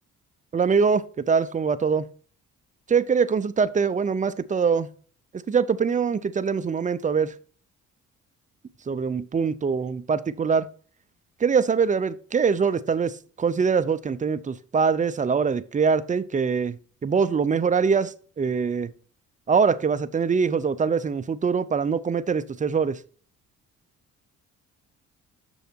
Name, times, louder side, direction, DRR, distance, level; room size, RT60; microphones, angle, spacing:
voice 1, 0.5-2.1 2.9-4.9 5.3-7.3 8.9-10.7 11.4-18.9 19.5-23.0, right 5 dB, 25° right, 0.6 m, -23 dB
6.8 x 6.3 x 4.4 m
cardioid pair, 90°, 30 cm